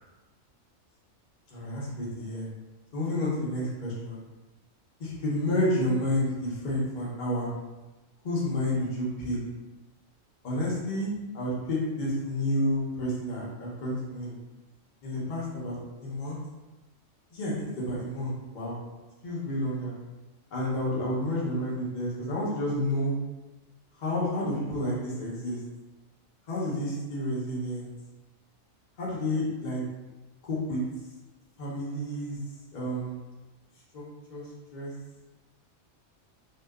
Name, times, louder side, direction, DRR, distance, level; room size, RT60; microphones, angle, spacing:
voice 1, 1.5-2.5 2.9-4.2 5.0-7.5 8.2-9.4 10.4-11.1 11.3-14.3 15.0-15.7 16.0-16.4 17.3-18.8 19.2-19.9 20.5-23.1 24.0-25.6 26.5-27.9 29.0-29.8 30.4-30.8 31.6-32.4 32.7-33.2 33.9-34.0 34.3-34.5 34.7-34.9, left 1 dB, 45° left, -6 dB, 0.7 m, -30 dB
2.7 x 2.2 x 2.2 m, 1.1 s
omnidirectional pair, 1.4 m